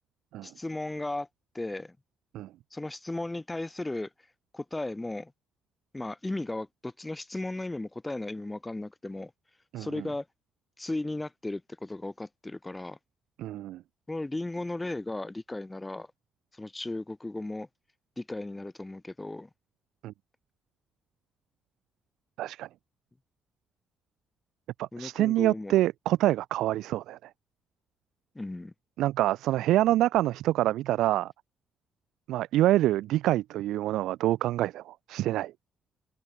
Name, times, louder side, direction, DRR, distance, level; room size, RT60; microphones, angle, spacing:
voice 1, 0.4-1.3 1.5-2.0 2.7-4.1 4.5-5.3 5.9-9.3 9.8-10.3 10.8-13.0 14.1-16.1 16.5-17.7 18.2-19.5 24.9-25.8 28.3-28.7, left 2 dB, 15° left, 6.6 m, -35 dB
voice 2, 9.7-10.0 13.4-13.8 20.0-20.1 22.4-22.7 24.8-27.2 29.0-31.3 32.3-35.5, right 14 dB, 90° right, 1.8 m, -26 dB
cardioid pair, 90°, 0 cm